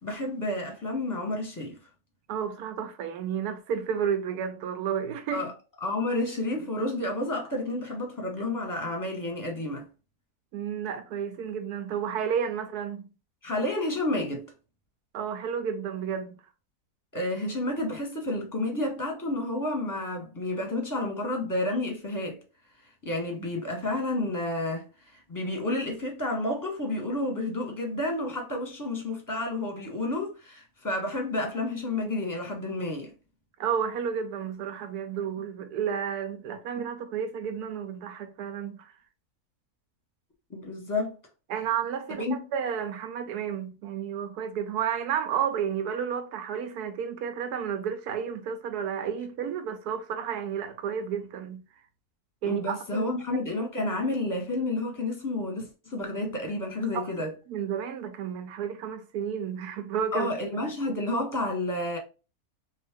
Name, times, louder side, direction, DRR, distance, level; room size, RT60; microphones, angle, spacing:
voice 1, 0.0-1.8 5.3-5.5 5.8-9.9 13.4-14.5 17.1-22.4 23.0-24.9 25.3-33.1 40.5-41.2 42.2-42.4 52.4-57.3 60.1-62.0, left 2 dB, 15° left, 0.9 m, -30 dB
voice 2, 2.3-5.5 10.5-13.1 15.1-16.4 33.6-38.9 41.5-51.6 52.4-53.1 53.8-53.9 56.9-60.3, right 8 dB, 85° right, 1.2 m, -31 dB
3.2 x 2.7 x 3.5 m
omnidirectional pair, 1.6 m